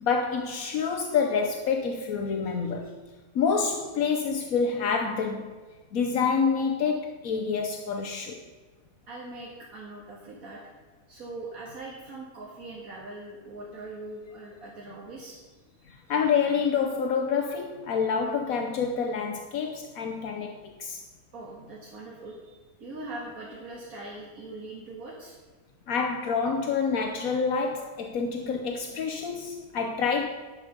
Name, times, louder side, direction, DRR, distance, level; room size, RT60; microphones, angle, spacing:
voice 1, 0.0-2.9 3.3-5.5 5.9-8.4 15.9-21.0 25.9-30.3, left 5 dB, 75° left, 4 dB, 1.3 m, -27 dB
voice 2, 9.1-10.6 11.1-15.4 21.3-22.5 22.8-25.4, right 2 dB, 80° right, -4 dB, 2.3 m, -41 dB
11.5 x 10.5 x 5.3 m, 1.3 s
omnidirectional pair, 1.5 m